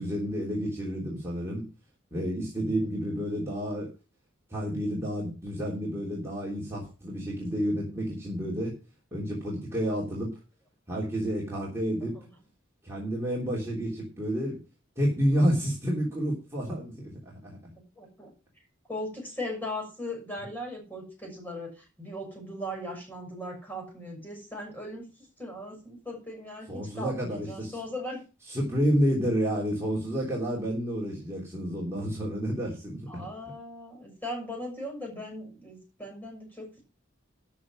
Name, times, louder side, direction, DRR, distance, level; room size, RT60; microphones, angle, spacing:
voice 1, 0.0-1.7 2.1-3.9 4.5-8.8 9.1-10.3 10.9-12.2 12.8-14.6 15.0-17.7 26.7-27.7 28.5-33.0, equal, 15° right, -5 dB, 3.3 m, -30 dB
voice 2, 18.0-18.3 18.9-28.2 33.1-36.8, left 1 dB, 10° left, 0 dB, 6.7 m, -38 dB
13.0 x 6.0 x 6.2 m, 0.33 s
head